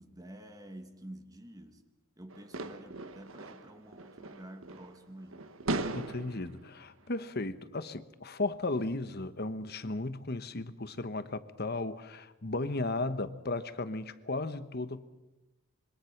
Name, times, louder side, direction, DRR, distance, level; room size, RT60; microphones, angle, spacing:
voice 1, 0.0-1.8 2.2-5.6, right 1 dB, 15° right, 1.7 m, -49 dB
sound 1, 2.3-5.0 5.2-6.6, right 2 dB, 70° right, 1.3 m, -38 dB
voice 2, 5.9-15.1, left 2 dB, 50° left, 1.2 m, -35 dB
26.0 x 23.5 x 6.0 m
head